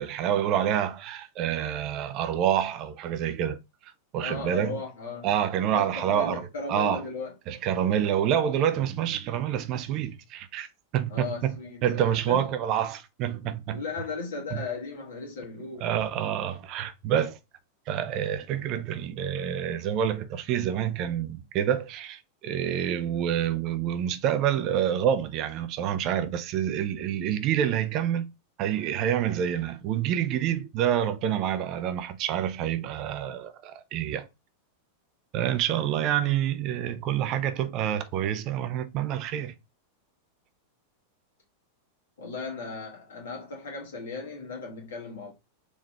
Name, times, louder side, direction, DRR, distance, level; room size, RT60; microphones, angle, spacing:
voice 1, 0.0-4.8 5.2-7.0 7.5-10.7 10.9-11.5 11.8-13.8 14.5-14.6 15.8-17.4 17.9-28.3 28.6-34.3 35.3-39.5, right 10 dB, 40° right, 0.5 m, -27 dB
voice 2, 4.2-5.3 5.7-7.3 11.1-12.4 13.7-15.9 42.2-45.3, left 4 dB, 60° left, 1.7 m, -36 dB
3.8 x 3.0 x 3.3 m
figure-of-eight pair, 90°, 0 cm